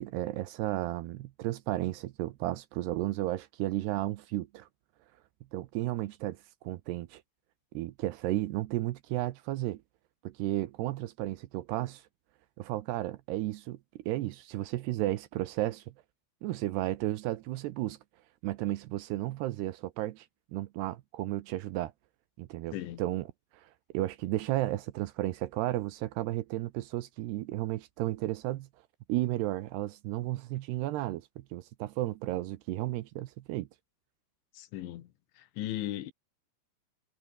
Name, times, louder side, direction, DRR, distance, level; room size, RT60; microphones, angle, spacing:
voice 1, 0.0-4.7 5.5-6.4 6.6-7.2 7.7-9.8 10.2-12.0 12.6-13.8 14.1-15.8 16.4-18.0 18.4-20.3 20.5-21.9 22.4-23.3 23.6-28.7 29.1-33.7, right 16 dB, 75° right, 2.7 m, -33 dB
voice 2, 34.6-35.1 35.6-36.1, left 13 dB, 80° left, 3.9 m, -36 dB
omnidirectional pair, 5.3 m